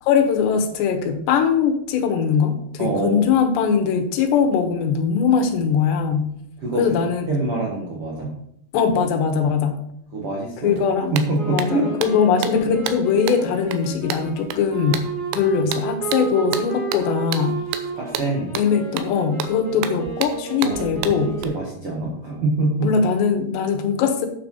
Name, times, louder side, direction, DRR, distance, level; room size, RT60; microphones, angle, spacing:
voice 1, 0.0-6.3 6.8-7.3 8.7-9.8 10.6-11.1 11.5-15.1 15.3-17.6 18.6-21.4 22.8-24.3, left 6 dB, 75° left, 6 dB, 3.2 m, -21 dB
voice 2, 2.8-3.3 6.6-8.3 10.1-10.7 11.1-11.9 15.4-15.5 18.0-18.5 20.6-20.8 21.2-22.9, right 2 dB, 60° right, -3 dB, 1.4 m, -25 dB
sound 1, 10.8-10.9 11.2-21.4, right 10 dB, 90° right, 3.2 m, -32 dB
sound 2, 11.3-21.7, right 5 dB, 45° right, 4.4 m, -32 dB
9.3 x 6.6 x 5.6 m, 0.72 s
omnidirectional pair, 5.3 m